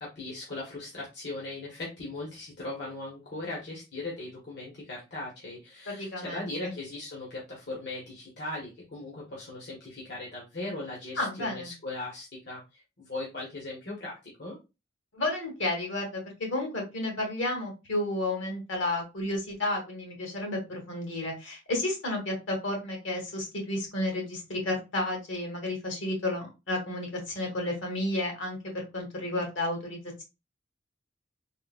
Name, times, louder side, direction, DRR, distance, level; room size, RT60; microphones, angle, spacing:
voice 1, 0.0-14.6, left 2 dB, 55° left, -4 dB, 0.9 m, -39 dB
voice 2, 5.9-6.7 11.2-11.7 15.1-30.2, left 1 dB, 75° left, 1 dB, 1.2 m, -32 dB
3.6 x 2.0 x 2.4 m, 0.26 s
head